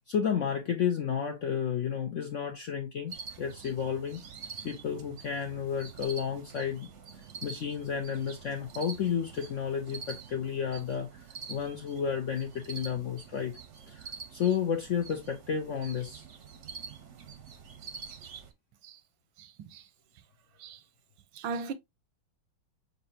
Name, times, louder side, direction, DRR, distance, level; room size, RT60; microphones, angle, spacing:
voice 1, 0.1-4.2 4.6-6.9 7.4-13.5 13.9-16.2, left 7 dB, 80° left, 0.6 m, -32 dB
sound 1, 3.1-18.5, right 6 dB, 60° right, 0.8 m, -46 dB
voice 2, 19.4-19.9 20.6-20.8 21.3-21.7, right 5 dB, 90° right, 1.4 m, -38 dB
6.5 x 2.7 x 2.6 m
omnidirectional pair, 2.1 m